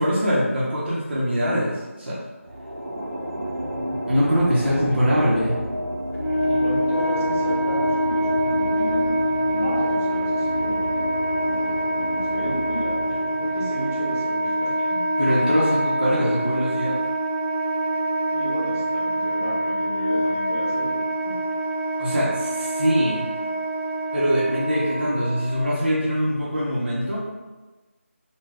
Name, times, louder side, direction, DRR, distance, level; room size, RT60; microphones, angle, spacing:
voice 1, 0.0-2.2 4.1-5.6 15.2-17.0 22.0-23.2 24.1-27.3, equal, 50° right, -7 dB, 0.7 m, -23 dB
sound 1, 2.4-15.0, equal, 85° right, 0.6 m, -31 dB
Wind instrument woodwind instrument, 6.1-25.6, right 1 dB, 65° left, 0.7 m, -25 dB
voice 2, 6.4-9.2 9.5-10.8 11.4-14.9 18.3-21.0 21.3-21.4, equal, 10° left, -10 dB, 0.3 m, -33 dB
2.3 x 2.2 x 3.3 m, 1.2 s
figure-of-eight pair, 170°, 8 cm